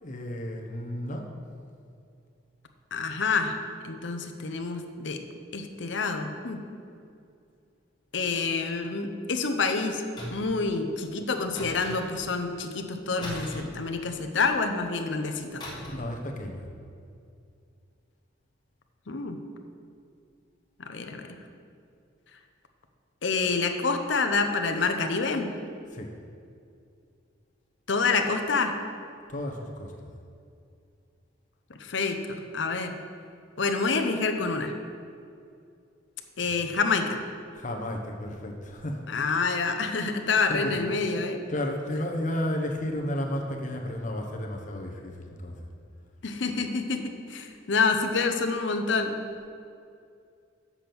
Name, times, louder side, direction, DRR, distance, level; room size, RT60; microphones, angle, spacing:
voice 1, 0.0-1.3 15.8-16.7 25.9-26.1 29.3-29.9 36.4-36.7 37.5-39.4 40.4-40.8 41.5-45.6, left 1 dB, 40° left, 1 dB, 1.0 m, -33 dB
voice 2, 2.9-3.6 3.8-5.2 5.5-6.6 8.1-10.0 10.3-15.6 19.1-19.4 20.8-21.4 23.2-25.5 27.9-28.7 31.8-33.0 33.6-34.7 36.4-37.2 39.1-41.4 46.2-49.1, left 4 dB, 65° left, 6 dB, 0.7 m, -27 dB
sound 1, 10.2-10.6 11.6-12.3 13.2-14.4 15.6-16.1 16.4-16.6, left 1 dB, 20° left, 1.5 m, -39 dB
7.3 x 6.9 x 6.0 m, 2.4 s
head